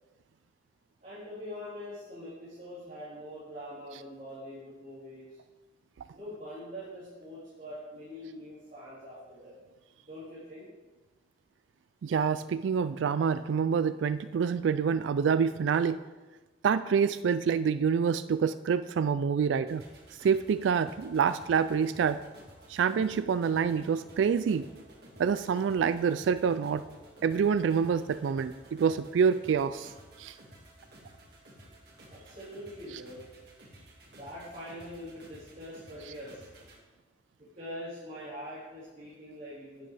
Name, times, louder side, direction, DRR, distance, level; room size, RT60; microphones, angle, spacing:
voice 1, 1.0-5.3 6.1-9.5 10.1-10.7 32.1-33.2 34.1-36.5 37.4-39.9, equal, 40° right, -11 dB, 3.9 m, -43 dB
voice 2, 12.0-16.0 16.6-19.8 20.2-22.2 22.7-24.7 25.2-26.8 27.2-29.9 30.2-30.3, right 6 dB, 75° right, 13 dB, 0.3 m, -27 dB
sound 1, 19.7-36.8, right 1 dB, 55° right, 2.1 m, -54 dB
11.5 x 9.6 x 3.4 m, 1.2 s
head